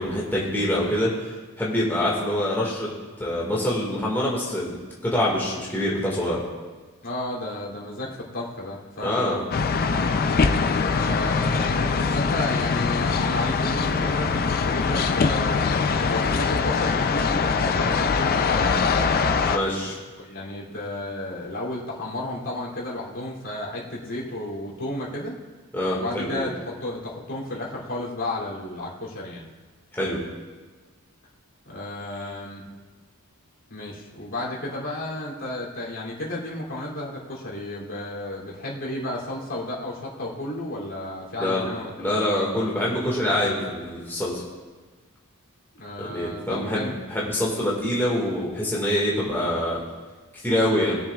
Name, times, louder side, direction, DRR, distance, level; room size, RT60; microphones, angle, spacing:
voice 1, 0.0-2.9 3.2-6.4 9.0-9.4 19.5-20.0 25.7-26.5 29.9-30.2 41.4-41.7 42.0-44.4 46.0-49.8 50.4-51.0, left 1 dB, 10° left, -6 dB, 1.8 m, -25 dB
voice 2, 7.0-9.5 10.9-18.8 19.7-19.9 20.2-25.3 25.9-29.4 31.7-32.7 33.7-42.2 45.7-46.9, left 1 dB, 60° left, -4 dB, 2.9 m, -33 dB
sound 1, 9.5-19.6, left 5 dB, 45° left, 0.5 m, -23 dB
21.0 x 7.2 x 2.4 m, 1.3 s
head